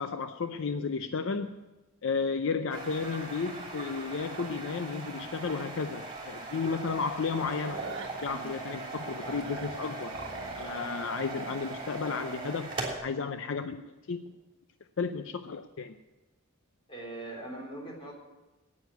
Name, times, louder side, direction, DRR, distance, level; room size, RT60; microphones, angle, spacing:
voice 1, 0.0-1.6 2.0-7.9 8.2-10.1 10.6-12.7 13.0-14.3 15.0-16.0, left 5 dB, 65° left, 9 dB, 0.5 m, -33 dB
sound 1, 2.7-12.9, right 3 dB, 25° right, 3.4 m, -40 dB
sound 2, 5.5-5.6 6.1-6.2 6.5-6.7 7.0-10.8, right 4 dB, 60° right, 1.3 m, -45 dB
voice 2, 16.9-18.1, right 1 dB, 25° left, 0 dB, 3.6 m, -42 dB
9.6 x 9.4 x 9.4 m, 1.1 s
head